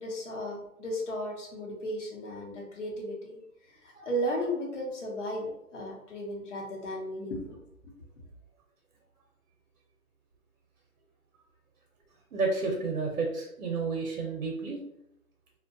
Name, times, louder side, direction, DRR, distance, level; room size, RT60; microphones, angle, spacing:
voice 1, 0.0-7.6, equal, 50° left, -1 dB, 0.8 m, -35 dB
voice 2, 12.3-14.8, right 3 dB, 65° right, -1 dB, 0.7 m, -31 dB
2.6 x 2.2 x 2.5 m, 0.81 s
hypercardioid pair, 170°, 45 cm